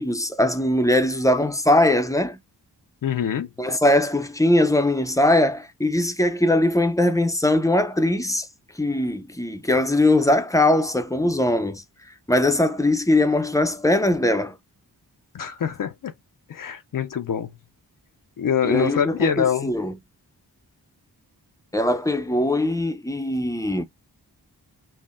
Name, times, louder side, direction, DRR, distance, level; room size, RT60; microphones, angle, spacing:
voice 1, 0.0-2.4 3.6-8.5 8.8-11.8 12.3-14.5 18.6-19.9 21.7-23.8, left 1 dB, 10° left, 0.5 m, -21 dB
voice 2, 3.0-3.5 15.3-16.1 16.5-17.5 18.4-19.7, left 8 dB, 55° left, 0.5 m, -24 dB
5.5 x 2.1 x 2.5 m
cardioid pair, 65°, 40 cm